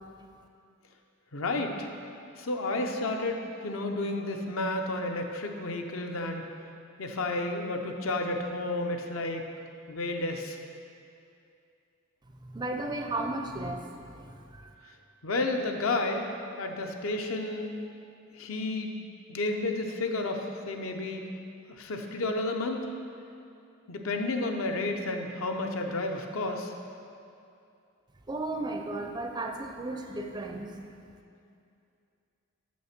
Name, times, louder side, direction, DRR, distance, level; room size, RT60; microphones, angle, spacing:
voice 1, 1.3-1.9 2.4-3.4 3.6-6.5 7.0-9.4 9.9-10.6 15.2-16.2 16.6-17.8 18.4-18.9 19.3-21.2 21.8-22.8 23.9-26.7, left 2 dB, 75° left, 4 dB, 0.7 m, -31 dB
voice 2, 12.4-14.7 28.3-30.7, right 2 dB, 20° right, 3 dB, 0.4 m, -35 dB
6.3 x 6.2 x 5.9 m, 2.5 s
head